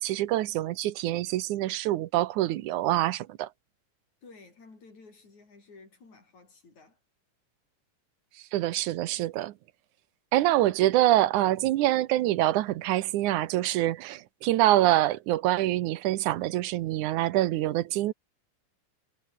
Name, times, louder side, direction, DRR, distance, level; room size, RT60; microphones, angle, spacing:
voice 1, 0.0-3.5 8.5-9.5 10.3-18.1, right 15 dB, 75° right, 2.2 m, -25 dB
voice 2, 4.2-7.0, left 3 dB, 60° left, 8.6 m, -53 dB
omnidirectional pair, 3.7 m